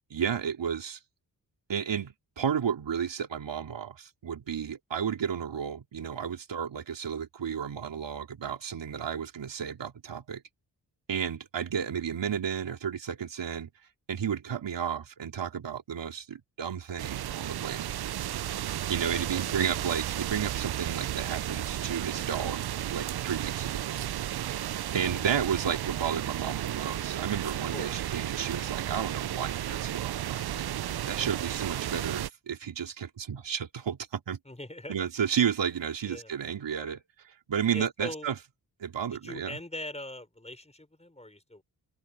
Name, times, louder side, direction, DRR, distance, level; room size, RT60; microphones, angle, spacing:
voice 1, 0.1-1.0 1.7-10.4 11.1-13.7 14.1-17.9 18.9-23.9 24.9-30.7 31.1-34.4 34.9-37.0 37.5-38.4 38.8-39.6, right 8 dB, 75° right, 3.3 m, -32 dB
sound 1, 17.0-32.3, right 12 dB, 60° right, 0.6 m, -33 dB
voice 2, 19.1-19.5 27.7-27.9 34.4-35.1 36.0-36.3 37.7-38.3 39.1-41.6, left 1 dB, 15° left, 4.9 m, -41 dB
cardioid pair, 50°, 44 cm